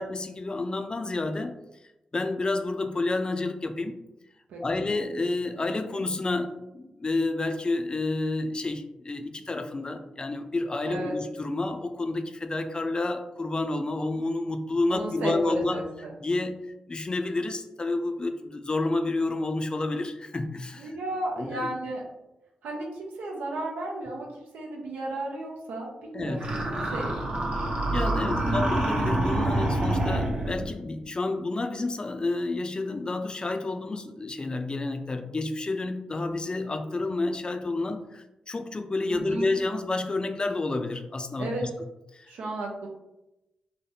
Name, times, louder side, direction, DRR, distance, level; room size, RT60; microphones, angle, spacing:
voice 1, 0.0-1.5 2.1-4.0 4.6-15.8 16.2-16.6 16.9-21.0 21.4-21.7 26.1-26.5 27.9-41.7 42.1-42.3, left 2 dB, 35° left, 7 dB, 0.3 m, -30 dB
voice 2, 4.5-4.8 10.8-11.1 14.9-16.1 20.8-22.0 22.6-24.3 24.5-26.6 26.8-27.1 28.1-28.6 39.1-39.5 41.4-41.7 42.3-42.9, right 2 dB, 85° right, 0 dB, 0.5 m, -34 dB
sound 1, 26.4-30.7, right 1 dB, 50° right, 0.8 m, -26 dB
3.2 x 2.1 x 2.7 m, 0.95 s
supercardioid pair, 40°, 3 cm